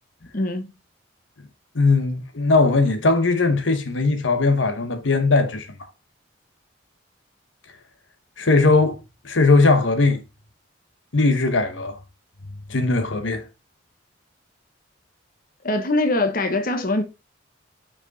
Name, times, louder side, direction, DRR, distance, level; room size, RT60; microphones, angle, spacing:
voice 1, 0.3-0.7 15.6-17.0, left 2 dB, 45° left, 1.1 m, -22 dB
voice 2, 1.7-5.7 8.4-9.0 9.2-10.2 11.1-12.0 12.7-13.5, left 3 dB, 75° left, 1.1 m, -19 dB
7.5 x 4.9 x 4.0 m
head